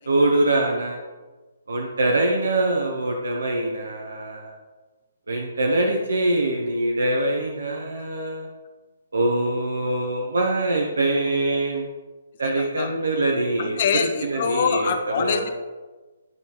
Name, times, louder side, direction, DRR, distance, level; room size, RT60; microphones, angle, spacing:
voice 1, 0.1-1.0 1.7-4.6 5.3-8.5 9.1-11.9 12.4-13.8 14.2-14.9 15.2-15.4, right 2 dB, 70° right, 1 dB, 0.9 m, -23 dB
voice 2, 12.4-12.9 13.6-15.5, left 6 dB, 45° left, 7 dB, 0.7 m, -25 dB
9.4 x 5.3 x 3.0 m, 1.3 s
figure-of-eight pair, 135°, 0 cm